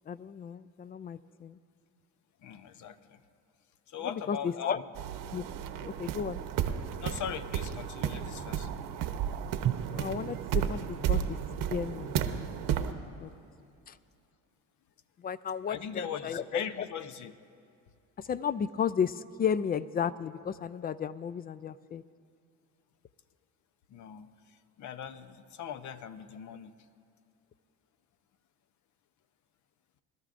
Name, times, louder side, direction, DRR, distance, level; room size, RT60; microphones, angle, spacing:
voice 1, 0.1-1.6 4.0-4.8 5.3-5.4 5.8-6.4 9.9-11.4 11.7-12.7 13.2-13.3 13.9-14.0 15.2-16.9 18.2-22.0, left 7 dB, 30° left, 17 dB, 0.4 m, -34 dB
voice 2, 2.4-3.2 3.9-4.8 7.0-8.7 15.7-17.3 23.9-26.8, left 8 dB, 55° left, 10 dB, 0.8 m, -40 dB
sound 1, 5.0-12.9, right 9 dB, 70° right, 0.9 m, -33 dB
Drum, 9.6-12.6, right 11 dB, 40° right, 0.4 m, -38 dB
22.5 x 13.0 x 2.5 m, 2.4 s
supercardioid pair, 85°, 35 cm